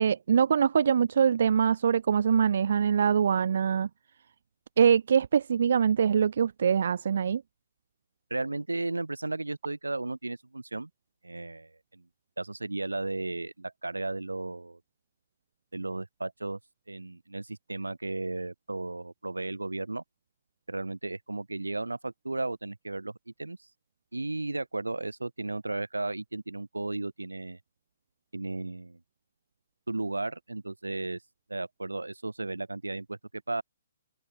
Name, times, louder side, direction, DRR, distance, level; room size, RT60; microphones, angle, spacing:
voice 1, 0.0-3.9 4.8-7.4, right 7 dB, 55° right, 0.5 m, -23 dB
voice 2, 8.3-10.9 11.2-12.1 12.4-14.8 15.7-16.6 16.9-20.0 20.7-23.7 24.1-27.6 28.3-29.0 29.9-31.2 31.5-33.6, right 2 dB, 80° right, 2.8 m, -34 dB
figure-of-eight pair, 130°, 0 cm